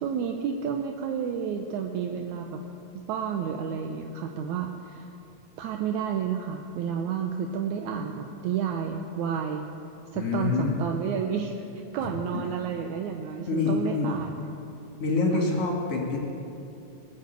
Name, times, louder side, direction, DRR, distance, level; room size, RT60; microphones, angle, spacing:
voice 1, 0.0-2.6 2.9-5.1 5.6-9.7 10.1-11.5 11.9-14.3 15.3-15.5, right 7 dB, 80° right, 4 dB, 2.0 m, -31 dB
voice 2, 10.1-10.8 12.0-12.1 13.5-14.3 15.0-16.2, left 4 dB, 55° left, -1 dB, 2.9 m, -26 dB
20.0 x 6.7 x 8.1 m, 2.8 s
omnidirectional pair, 3.5 m